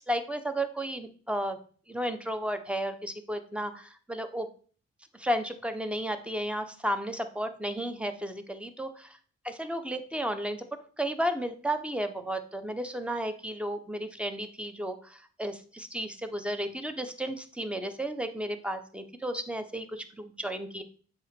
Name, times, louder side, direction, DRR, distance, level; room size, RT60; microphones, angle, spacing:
voice 1, 0.1-1.6 1.9-4.5 5.1-9.1 9.4-10.6 11.0-20.8, equal, 5° right, 8 dB, 0.9 m, -33 dB
7.5 x 2.9 x 5.3 m, 0.42 s
cardioid pair, 60°, 29 cm